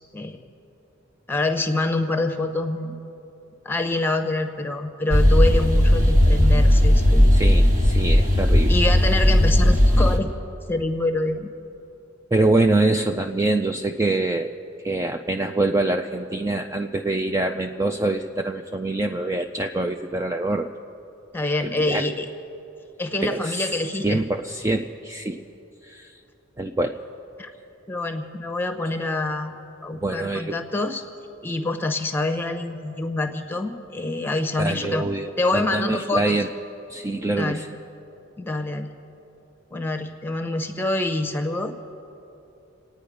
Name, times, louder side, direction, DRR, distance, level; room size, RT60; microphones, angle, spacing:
voice 1, 1.3-2.9 3.6-7.4 8.7-10.3 10.7-11.5 21.3-22.3 23.0-24.2 27.4-27.5 27.9-29.5 29.8-31.0 31.4-35.1 35.4-36.4 37.4-37.6 38.4-38.9 39.7-41.7, left 2 dB, 10° left, 7 dB, 0.9 m, -26 dB
sound 1, 5.1-10.2, left 1 dB, 40° right, 1.4 m, -16 dB
voice 2, 7.3-8.8 12.3-20.7 21.6-22.1 23.2-23.7 24.0-25.4 25.8-26.2 26.6-27.0 30.0-30.6 34.6-36.5 36.9-37.7, right 2 dB, 15° right, 3 dB, 0.4 m, -25 dB
27.0 x 9.5 x 5.1 m, 2.8 s
head